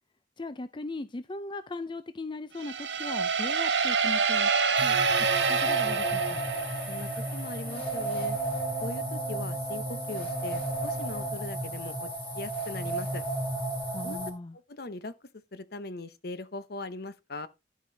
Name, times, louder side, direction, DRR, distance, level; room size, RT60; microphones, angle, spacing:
voice 1, 0.4-4.5 4.8-5.0 5.5-6.4 13.9-14.6, left 2 dB, 25° left, 0.5 m, -38 dB
sound 1, 2.6-7.3, right 5 dB, 80° right, 1.5 m, -27 dB
sound 2, 4.7-14.3, right 2 dB, 10° left, 3.6 m, -33 dB
sound 3, 4.9-11.3, right 2 dB, 50° right, 2.2 m, -46 dB
voice 2, 6.9-8.4 8.8-12.1 12.3-13.2 14.0-14.2 14.7-15.1 15.5-17.5, left 2 dB, 60° left, 1.0 m, -40 dB
12.0 x 5.4 x 4.0 m
head